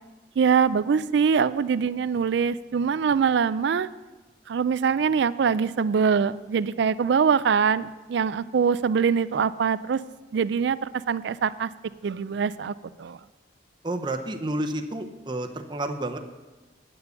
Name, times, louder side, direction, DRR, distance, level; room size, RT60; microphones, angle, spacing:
voice 1, 0.4-3.9 4.5-10.0 10.3-11.7 12.0-13.2, right 6 dB, 65° right, 17 dB, 0.3 m, -23 dB
voice 2, 13.8-16.2, right 1 dB, 25° right, 5 dB, 0.6 m, -30 dB
9.6 x 7.0 x 6.7 m, 1.2 s
head